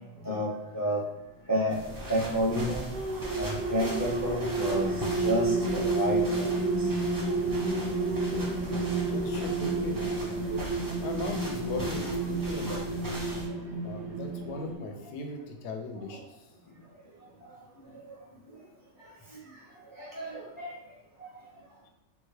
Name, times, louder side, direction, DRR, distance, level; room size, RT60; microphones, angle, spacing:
voice 1, 0.2-1.0 1.5-1.8 2.1-2.8 3.4-4.9 5.2-6.5 20.0-20.7, equal, 30° left, -5 dB, 0.4 m, -30 dB
sound 1, 1.7-13.5, right 1 dB, 25° right, 0.5 m, -40 dB
sound 2, 2.7-14.8, right 3 dB, 85° right, 1.0 m, -30 dB
voice 2, 8.1-8.5 8.9-10.4 11.0-13.0 13.8-16.2, left 3 dB, 70° left, 4 dB, 0.8 m, -39 dB
3.5 x 2.2 x 3.1 m, 1.0 s
omnidirectional pair, 1.3 m